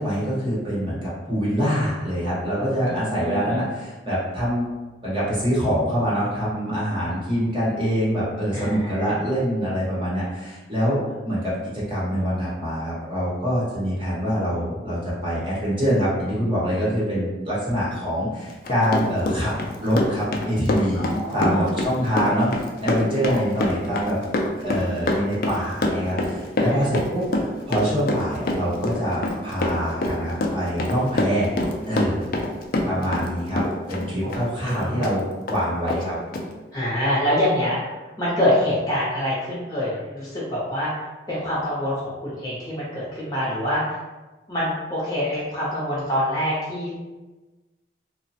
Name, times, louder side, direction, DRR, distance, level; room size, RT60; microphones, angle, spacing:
voice 1, 0.0-4.7 5.0-11.0 11.2-19.5 19.8-24.2 24.6-31.5 31.9-32.2 32.8-33.6 33.9-35.2 35.5-36.1, equal, 30° right, -8 dB, 0.9 m, -25 dB
voice 2, 2.8-3.5 8.5-9.2 20.9-21.7 23.3-23.4 26.6-26.8 32.9-33.3 34.2-35.0 36.7-40.9 41.3-44.0 44.5-47.0, left 1 dB, 20° left, -8 dB, 0.7 m, -26 dB
Run, 18.5-33.3 33.6-35.2 35.5-35.6 35.9-36.0 36.3-36.4, left 2 dB, 50° left, 0.3 m, -25 dB
3.0 x 2.1 x 2.7 m, 1.2 s
head